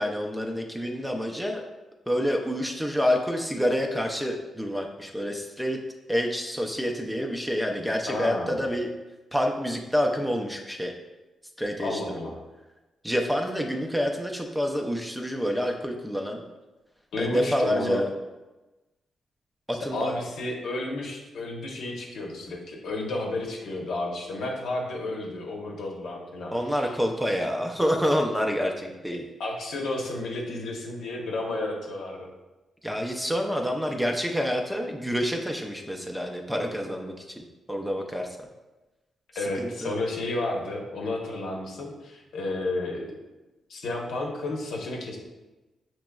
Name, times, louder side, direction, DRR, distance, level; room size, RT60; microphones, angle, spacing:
voice 1, 0.0-1.6 2.1-5.8 6.1-8.9 9.3-10.9 11.6-12.3 13.0-16.4 17.2-18.1 19.7-20.2 26.5-29.2 32.8-38.4 39.4-39.9, equal, 5° right, 2 dB, 0.4 m, -28 dB
voice 2, 8.1-8.5 11.8-12.3 17.1-18.0 19.9-26.5 29.4-32.3 39.3-43.1 43.7-45.2, left 2 dB, 75° left, 0 dB, 0.8 m, -32 dB
5.9 x 3.0 x 2.2 m, 1.1 s
cardioid pair, 110°, 0 cm